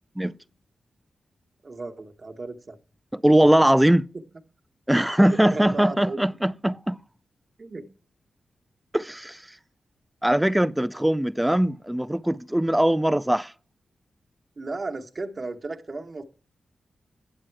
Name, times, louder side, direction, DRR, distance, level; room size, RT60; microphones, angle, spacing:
voice 1, 1.6-2.8 5.3-6.2 7.6-7.8 14.6-16.2, right 3 dB, 50° right, 1.0 m, -35 dB
voice 2, 3.1-4.1 4.9-7.0 8.9-9.4 10.2-13.5, right 1 dB, 10° right, 0.4 m, -21 dB
8.9 x 7.6 x 4.6 m
cardioid pair, 50°, 0 cm